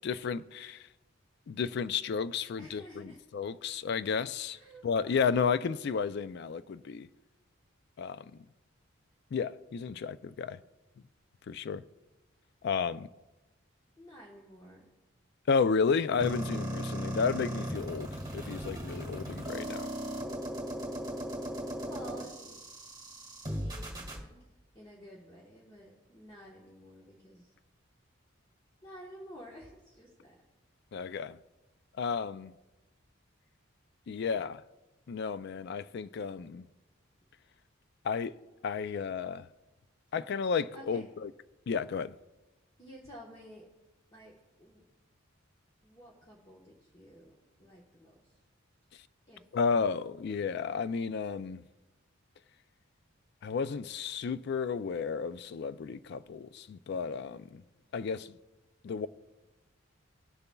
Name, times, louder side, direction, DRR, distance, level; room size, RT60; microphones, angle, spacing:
voice 1, 0.0-0.9 1.5-7.1 8.0-8.3 9.3-10.6 11.5-11.8 12.6-13.1 15.5-19.9 30.9-31.4 32.0-32.5 34.1-34.6 35.1-36.6 38.0-38.4 38.6-39.5 40.1-41.3 41.7-42.1 49.5-51.6 53.4-57.6 57.9-58.4 58.8-59.1, left 5 dB, 55° left, 0.3 m, -32 dB
voice 2, 2.6-3.2 4.5-5.6 14.0-14.9 21.8-22.7 23.6-24.5 24.7-27.5 28.8-30.3 40.7-41.1 42.8-43.6 44.1-44.3 44.6-44.8 45.8-48.1 49.3-49.4 49.7-50.0, equal, 20° left, 1.1 m, -51 dB
sound 1, 16.2-24.2, right 1 dB, 20° right, 1.8 m, -37 dB
19.5 x 6.8 x 2.3 m
head